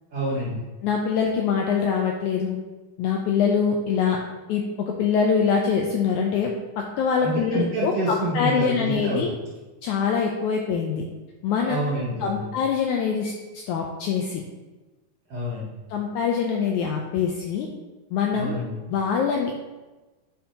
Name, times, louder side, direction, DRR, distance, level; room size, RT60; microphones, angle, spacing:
voice 1, 0.1-0.6 7.2-9.3 11.6-12.5 15.3-15.8 18.3-18.8, right 1 dB, 50° right, -7 dB, 2.4 m, -28 dB
voice 2, 0.8-2.6 3.0-4.2 4.5-9.3 9.8-11.1 11.4-11.8 12.2-14.4 15.9-17.7 18.1-18.5 18.9-19.6, left 6 dB, 85° left, 1 dB, 1.7 m, -24 dB
9.2 x 6.6 x 2.9 m, 1.2 s
omnidirectional pair, 4.1 m